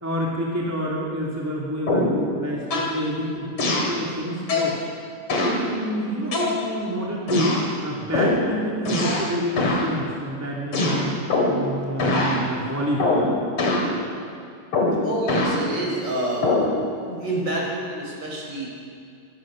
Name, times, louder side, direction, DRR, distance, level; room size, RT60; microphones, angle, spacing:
voice 1, 0.0-2.1 2.4-3.5 3.9-4.8 5.4-11.2 11.5-13.4, equal, 5° right, -3 dB, 2.2 m, -28 dB
sound 1, 1.9-2.2 2.7-3.0 3.6-4.0 4.5-4.8 5.3-5.6 6.3-6.9 7.3-7.7 8.1-8.4 8.9-9.3 9.6-9.9 10.7-11.7 12.0-12.4 13.0-13.3 13.6-13.9 14.7-15.6 16.4-16.7, left 2 dB, 45° left, 3.8 m, -22 dB
voice 2, 15.0-16.5 17.0-18.7, right 1 dB, 35° right, -3 dB, 6.0 m, -28 dB
25.0 x 17.0 x 6.4 m, 2.4 s
omnidirectional pair, 3.4 m